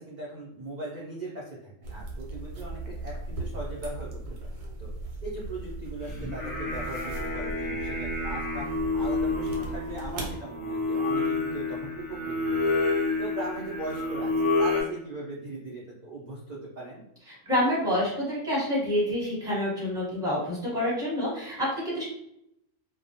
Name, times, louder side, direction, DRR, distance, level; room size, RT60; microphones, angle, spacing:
voice 1, 0.0-4.9 5.2-8.6 8.9-12.7 13.2-17.0, right 2 dB, 55° right, -6 dB, 0.5 m, -39 dB
sound 1, 1.8-10.4, right 2 dB, 85° right, 1.0 m, -38 dB
Singing, 6.0-14.8, left 3 dB, 35° left, 0.6 m, -29 dB
voice 2, 17.3-22.1, left 1 dB, 5° right, -6 dB, 0.8 m, -28 dB
2.3 x 2.1 x 2.7 m, 0.77 s
omnidirectional pair, 1.3 m